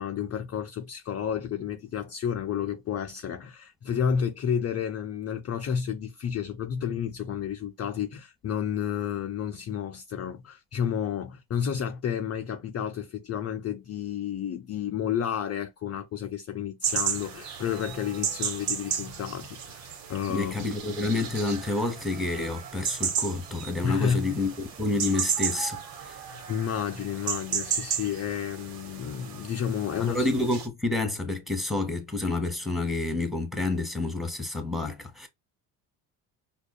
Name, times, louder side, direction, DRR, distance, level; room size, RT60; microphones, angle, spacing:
voice 1, 0.0-20.7 23.8-24.4 26.5-30.3, left 8 dB, 35° left, 0.6 m, -31 dB
sound 1, 16.8-30.7, right 7 dB, 85° right, 1.0 m, -34 dB
voice 2, 20.3-25.8 30.0-35.3, left 2 dB, ahead, 1.2 m, -29 dB
4.9 x 2.3 x 2.2 m
hypercardioid pair, 70°, 47 cm